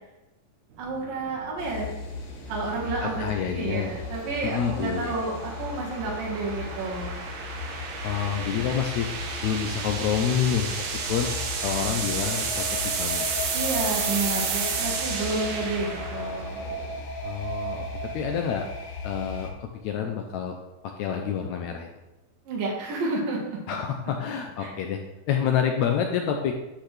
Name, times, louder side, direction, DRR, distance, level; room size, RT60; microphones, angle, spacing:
sound 1, 0.7-17.0, right 5 dB, 65° right, 2.0 m, -33 dB
voice 1, 0.8-1.9 2.5-3.3 3.6-7.2 13.5-16.6 22.5-23.6 24.6-24.7, right 3 dB, 85° right, -3 dB, 3.3 m, -30 dB
sound 2, 1.6-19.5, left 3 dB, 65° left, 2.0 m, -36 dB
voice 2, 3.0-3.9 4.4-5.2 8.0-9.1 9.4-11.3 11.6-13.3 17.2-18.7 19.0-20.6 20.8-21.9 23.7-25.0 25.3-26.6, left 8 dB, 80° left, 3 dB, 1.7 m, -28 dB
11.5 x 5.9 x 3.3 m, 1.0 s
omnidirectional pair, 3.9 m